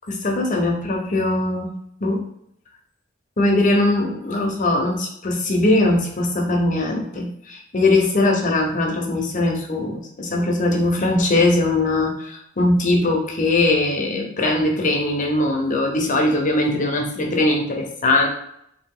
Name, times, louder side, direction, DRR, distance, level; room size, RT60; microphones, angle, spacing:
voice 1, 0.1-1.7 2.0-2.2 3.4-18.3, left 2 dB, 40° left, 1 dB, 0.8 m, -20 dB
3.5 x 2.9 x 3.7 m, 0.72 s
head